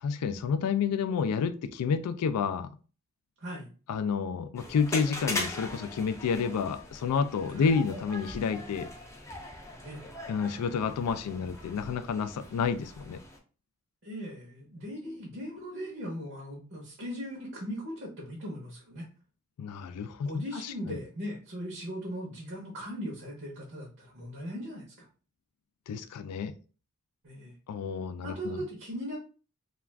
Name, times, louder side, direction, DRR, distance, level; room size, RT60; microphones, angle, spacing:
voice 1, 0.0-2.7 3.9-8.9 10.3-13.2 19.6-21.0 25.9-26.6 27.7-28.6, left 6 dB, 90° left, 0.3 m, -30 dB
voice 2, 3.4-3.7 7.5-7.7 9.8-10.0 14.0-19.1 20.3-25.1 27.2-27.5 28.2-29.2, equal, 55° right, 0.8 m, -39 dB
sound 1, 4.6-13.4, left 2 dB, 15° left, 0.4 m, -40 dB
2.4 x 2.3 x 3.2 m
head